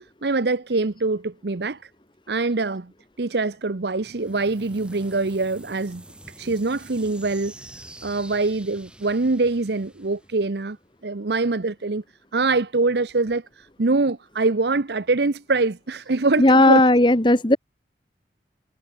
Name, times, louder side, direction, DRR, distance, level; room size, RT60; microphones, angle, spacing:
voice 1, 0.2-1.8 2.3-2.9 3.2-6.0 6.4-7.5 8.0-10.8 11.0-12.0 12.3-16.8, right 3 dB, 70° right, 0.8 m, -24 dB
sound 1, 4.0-10.9, right 1 dB, 5° right, 7.6 m, -46 dB
voice 2, 16.4-17.6, left 1 dB, 25° left, 1.5 m, -15 dB
head